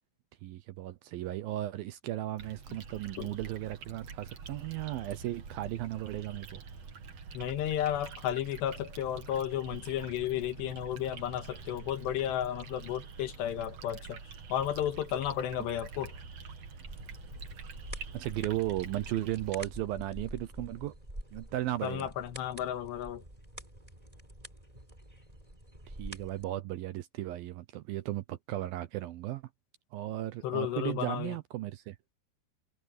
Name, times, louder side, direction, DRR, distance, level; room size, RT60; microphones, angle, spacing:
voice 1, 0.4-6.6 18.1-21.0 21.3-22.1 25.9-29.4 29.9-32.0, right 15 dB, 75° right, 2.3 m, -36 dB
sound 1, 2.4-19.6, right 5 dB, 45° right, 2.7 m, -46 dB
voice 2, 7.3-14.2 14.5-16.1 21.8-23.2 30.4-31.4, left 11 dB, 85° left, 3.6 m, -33 dB
sound 2, 16.8-26.4, right 1 dB, 10° right, 5.1 m, -47 dB
omnidirectional pair, 4.9 m